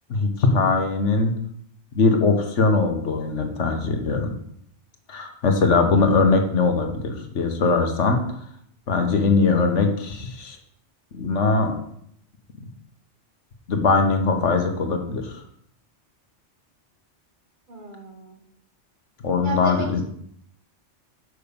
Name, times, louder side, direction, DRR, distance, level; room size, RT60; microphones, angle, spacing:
voice 1, 0.1-1.4 1.9-4.3 5.1-8.2 8.9-10.6 11.1-11.7 13.7-15.3 19.2-20.0, left 4 dB, 85° left, 5 dB, 1.5 m, -21 dB
voice 2, 17.7-18.4 19.4-20.0, right 3 dB, 45° right, 2 dB, 1.5 m, -33 dB
6.4 x 5.4 x 6.9 m, 0.68 s
omnidirectional pair, 1.2 m